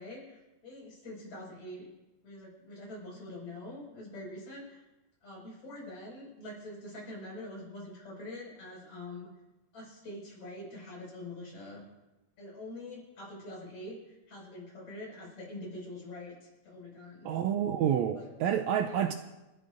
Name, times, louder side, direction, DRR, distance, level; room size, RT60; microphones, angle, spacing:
voice 1, 0.0-1.9 2.2-4.8 5.2-9.3 9.7-11.8 12.4-17.3 18.1-18.3 18.8-19.2, left 1 dB, 60° left, 6.8 m, -45 dB
voice 2, 17.2-19.1, right 9 dB, 80° right, 1.6 m, -29 dB
30.0 x 11.5 x 2.6 m
omnidirectional pair, 3.7 m